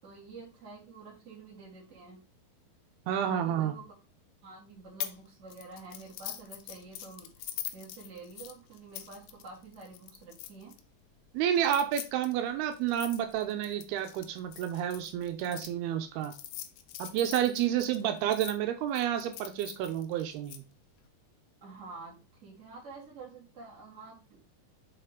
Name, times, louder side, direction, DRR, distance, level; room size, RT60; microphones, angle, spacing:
voice 1, 0.0-2.2 3.2-3.9 4.4-7.3 7.7-10.7 21.6-24.4, right 3 dB, 20° right, -4 dB, 2.3 m, -48 dB
voice 2, 3.1-3.7 11.3-16.3 17.0-20.6, right 10 dB, 85° right, 7 dB, 2.7 m, -30 dB
sound 1, 5.0-5.2 5.5-10.8 11.6-15.7 16.2-18.5 19.0-20.6, left 13 dB, 90° left, 2.8 m, -43 dB
8.2 x 4.2 x 3.7 m, 0.31 s
omnidirectional pair, 4.6 m